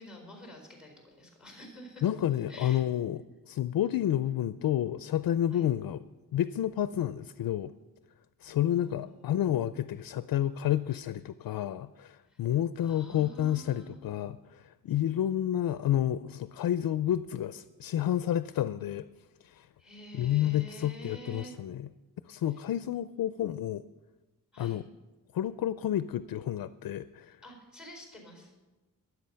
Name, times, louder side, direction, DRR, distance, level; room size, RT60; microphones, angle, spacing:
voice 1, 0.0-2.1 2.5-2.8 5.5-5.7 8.7-9.3 12.3-12.4 12.8-13.9 19.8-21.6 22.5-22.6 24.5-24.8 27.4-28.5, equal, ahead, 2 dB, 4.3 m, -48 dB
voice 2, 2.0-3.2 3.5-6.0 6.3-7.7 8.4-19.0 19.4-19.7 20.1-21.9 22.3-23.8 24.6-24.8 25.3-27.4, left 11 dB, 75° left, 14 dB, 0.5 m, -30 dB
22.5 x 8.1 x 5.6 m, 1.2 s
wide cardioid pair, 180°, 35 cm